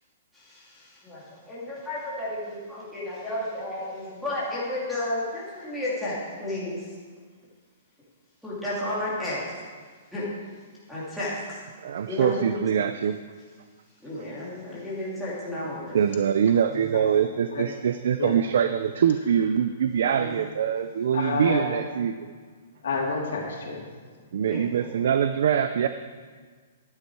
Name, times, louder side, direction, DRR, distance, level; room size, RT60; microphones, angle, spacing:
voice 1, 0.3-6.9 8.4-9.6 10.1-10.3 10.9-11.6 12.1-12.6 14.0-16.0 20.2-20.4 24.5-24.9, left 1 dB, ahead, -10 dB, 2.5 m, -32 dB
voice 2, 11.8-13.2 15.9-22.3 24.3-25.9, right 8 dB, 55° right, 10 dB, 0.5 m, -24 dB
voice 3, 21.1-21.6 22.8-23.8, left 4 dB, 70° left, -2 dB, 3.1 m, -28 dB
12.5 x 9.8 x 4.7 m, 1.5 s
hypercardioid pair, 180°, 0 cm